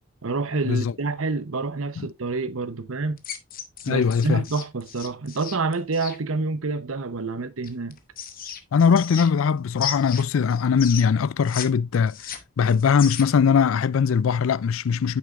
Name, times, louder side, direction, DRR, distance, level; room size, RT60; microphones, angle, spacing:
voice 1, 0.2-3.2 3.9-8.0, right 3 dB, 70° right, 0.8 m, -28 dB
sound 1, 3.2-6.2 7.6-9.5 9.8-11.7 11.9-13.5, left 8 dB, 45° left, 0.9 m, -35 dB
voice 2, 3.9-4.4 8.7-12.2 12.6-15.2, left 6 dB, 70° left, 0.4 m, -20 dB
8.4 x 6.3 x 2.5 m
head